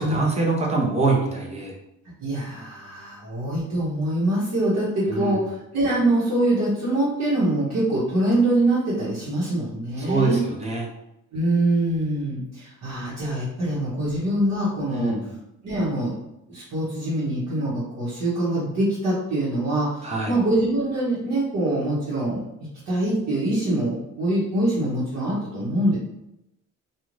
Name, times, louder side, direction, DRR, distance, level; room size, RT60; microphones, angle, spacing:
voice 1, 0.0-1.7 5.0-5.4 10.0-10.9 14.9-15.3 20.0-20.3, right 3 dB, 20° right, -1 dB, 0.6 m, -24 dB
voice 2, 2.2-10.4 11.3-15.2 15.6-16.1 16.5-22.4 22.9-26.0, right 1 dB, 60° right, -8 dB, 1.0 m, -24 dB
2.5 x 2.3 x 3.1 m, 0.85 s
cardioid pair, 120°, 31 cm